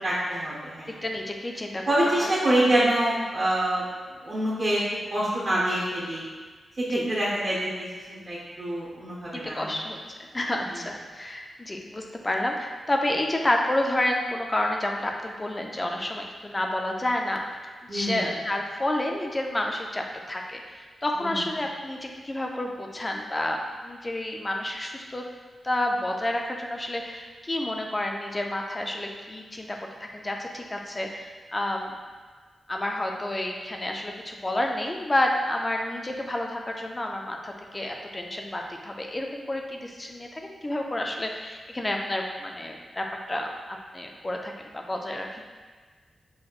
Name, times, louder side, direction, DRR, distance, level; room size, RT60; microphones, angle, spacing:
voice 1, 0.0-0.9 1.9-3.8 4.2-4.8 5.1-6.3 6.9-9.8 10.7-10.8 17.9-18.3 21.2-21.4, right 1 dB, 30° right, -7 dB, 1.1 m, -26 dB
voice 2, 1.0-2.3 6.9-7.0 9.3-17.4 17.9-25.2 25.6-31.9 32.7-45.4, left 1 dB, 15° left, 2 dB, 0.4 m, -30 dB
6.2 x 3.0 x 2.4 m, 1.5 s
wide cardioid pair, 165°, 0 cm